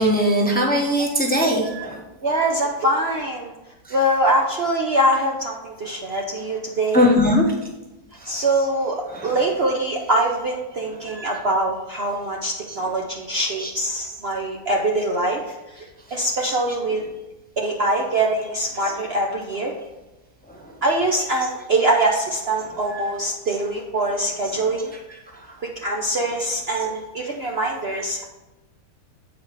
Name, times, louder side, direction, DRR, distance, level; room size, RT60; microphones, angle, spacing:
voice 1, 0.0-2.0 3.9-4.0 6.1-6.2 6.9-7.4 8.2-8.7 9.1-9.5 10.1-10.2 11.0-11.4 12.7-12.8 13.6-13.7 14.0-14.1 16.4-16.5 18.7-18.9 21.2-21.5 22.6-23.1 23.5-23.6 24.4-24.6 25.1-25.2 26.8-26.9, equal, 5° left, 0 dB, 0.9 m, -22 dB
voice 2, 2.2-3.5 3.9-7.1 8.2-15.8 16.1-17.0 17.6-19.8 20.8-24.9 25.8-28.2, right 1 dB, 50° right, 0 dB, 0.8 m, -23 dB
8.3 x 4.8 x 4.7 m, 1.0 s
omnidirectional pair, 1.7 m